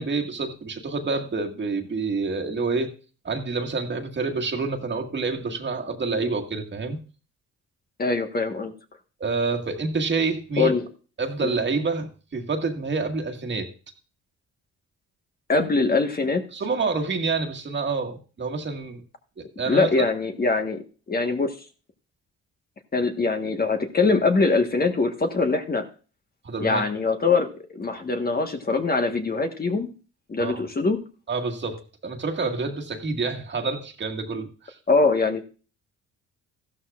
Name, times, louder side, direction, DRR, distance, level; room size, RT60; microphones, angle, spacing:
voice 1, 0.0-2.9 3.2-7.0 9.2-10.7 11.2-13.7 16.5-19.0 19.4-19.9 26.4-26.8 30.4-30.6 31.3-34.8, right 4 dB, 40° right, 3 dB, 1.8 m, -28 dB
voice 2, 8.0-8.7 10.6-10.8 11.4-11.5 15.5-16.4 19.7-20.8 21.1-21.6 22.9-25.8 26.6-27.5 27.7-29.9 30.3-31.0 34.9-35.4, left 3 dB, 30° left, 5 dB, 1.4 m, -22 dB
14.5 x 12.5 x 2.4 m, 0.36 s
cardioid pair, 90°, 30 cm